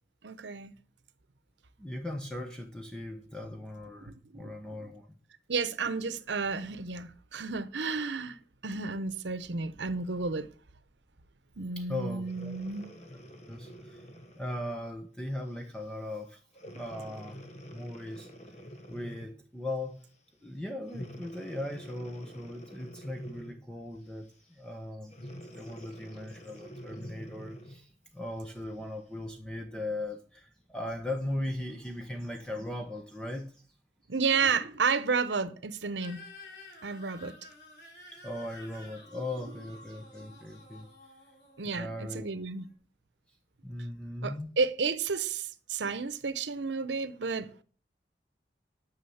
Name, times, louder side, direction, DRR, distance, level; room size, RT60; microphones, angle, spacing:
voice 1, 0.2-0.7 4.1-4.5 5.5-10.5 11.6-12.9 34.1-36.2 36.8-37.4 41.6-42.7 44.2-47.5, right 4 dB, 90° right, 0.8 m, -32 dB
voice 2, 1.8-5.1 11.8-12.6 13.5-14.1 14.4-16.4 16.7-17.4 17.7-18.3 18.9-20.0 20.4-24.3 24.6-33.6 38.1-40.9 41.8-42.3 43.6-44.5, left 1 dB, 5° left, 0.9 m, -38 dB
Breathing, 12.2-14.9 15.5-15.7 16.5-19.4 20.9-23.7 25.1-27.8 28.5-28.6, equal, 40° left, 1.3 m, -47 dB
sound 1, 36.0-42.7, left 2 dB, 65° left, 4.2 m, -52 dB
9.8 x 6.3 x 7.1 m
head